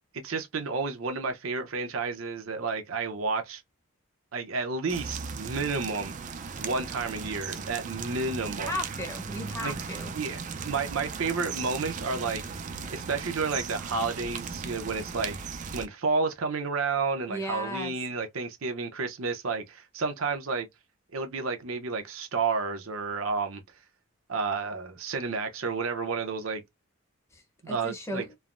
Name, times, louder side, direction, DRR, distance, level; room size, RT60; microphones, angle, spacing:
voice 1, 0.1-3.6 4.3-6.1 6.6-8.8 9.6-9.8 10.1-12.4 12.9-15.4 15.7-20.7 21.1-23.6 24.3-26.6 27.6-28.3, right 4 dB, 75° right, 0.7 m, -31 dB
sound 1, 4.9-15.9, right 5 dB, 35° right, 0.3 m, -37 dB
voice 2, 8.4-10.1 17.3-17.9 27.3-28.3, equal, 15° left, 0.8 m, -36 dB
3.2 x 2.0 x 2.5 m
head